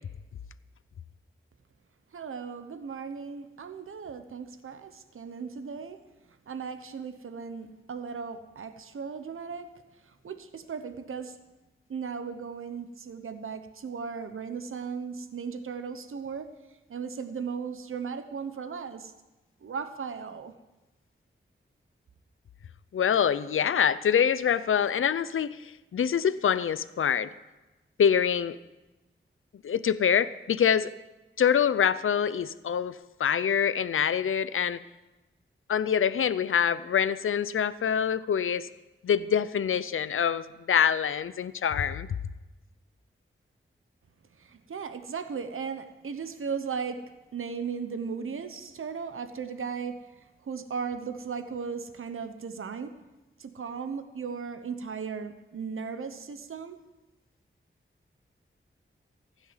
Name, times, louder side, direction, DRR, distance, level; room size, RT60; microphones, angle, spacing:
voice 1, 2.1-6.0 6.5-9.7 10.1-11.3 11.9-16.5 16.9-19.1 19.6-20.5 44.4-47.0 47.3-50.0 50.4-52.9 53.4-56.8, right 6 dB, 80° right, 9 dB, 0.9 m, -36 dB
voice 2, 22.9-27.3 28.0-28.6 29.6-30.9 31.4-34.8 35.7-38.7 39.0-42.1, left 8 dB, 75° left, 15 dB, 0.5 m, -25 dB
15.5 x 6.3 x 9.6 m, 1.1 s
wide cardioid pair, 120°, 21 cm